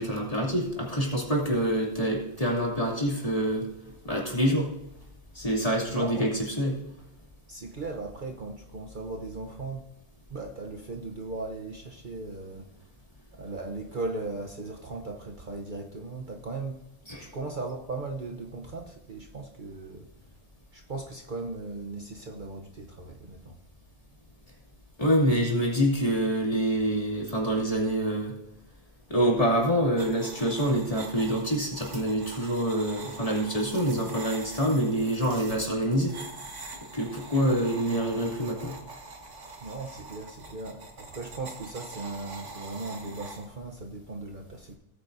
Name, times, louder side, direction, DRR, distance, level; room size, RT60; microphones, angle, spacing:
voice 1, 0.0-3.7 4.0-4.7 5.3-6.8 17.1-17.3 25.0-28.3 29.1-36.1 36.9-38.8, equal, 30° left, -3 dB, 2.8 m, -26 dB
voice 2, 5.9-6.3 7.5-9.9 10.3-12.7 13.3-16.8 17.2-20.1 20.7-23.6 39.6-44.7, right 3 dB, 45° right, 3 dB, 1.0 m, -37 dB
sound 1, 30.0-43.5, right 3 dB, 75° right, 1.9 m, -44 dB
18.0 x 8.9 x 2.6 m, 0.86 s
omnidirectional pair, 1.2 m